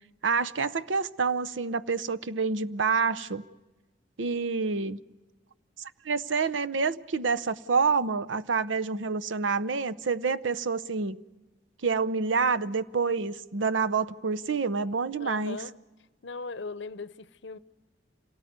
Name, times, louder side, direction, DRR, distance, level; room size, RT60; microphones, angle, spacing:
voice 1, 0.2-3.4 4.2-5.0 6.0-11.2 11.8-15.6, right 4 dB, 85° right, 0.8 m, -27 dB
voice 2, 15.2-15.8 16.2-17.6, left 4 dB, 70° left, 0.7 m, -38 dB
27.0 x 18.0 x 9.4 m
head